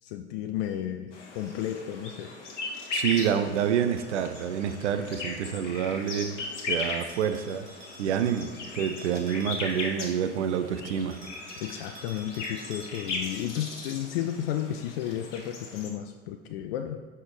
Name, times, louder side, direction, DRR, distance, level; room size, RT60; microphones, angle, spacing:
voice 1, 0.0-2.3 8.2-8.3 11.6-17.0, left 11 dB, 55° left, 6 dB, 0.5 m, -33 dB
sound 1, 1.1-15.9, left 3 dB, 75° left, 1.1 m, -38 dB
voice 2, 2.9-6.4 6.7-7.7 8.0-11.2, right 8 dB, 70° right, 9 dB, 0.6 m, -28 dB
Bell, 3.2-4.9 7.1-10.3 11.1-13.5, right 2 dB, 35° right, 1.9 m, -50 dB
5.7 x 5.6 x 4.7 m, 1.5 s
figure-of-eight pair, 75°, 36 cm